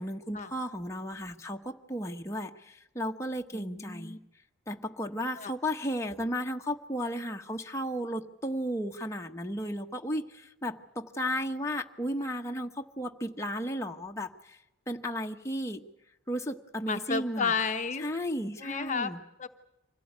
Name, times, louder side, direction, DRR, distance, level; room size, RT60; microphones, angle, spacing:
voice 1, 0.0-4.2 4.7-14.6 14.9-15.8 16.3-17.5 18.0-19.2, equal, 15° left, 2 dB, 1.1 m, -34 dB
voice 2, 3.5-4.2 5.4-5.5 16.9-18.0 18.6-19.1 19.4-19.5, left 5 dB, 40° left, 7 dB, 0.9 m, -32 dB
25.0 x 17.5 x 9.5 m, 0.91 s
head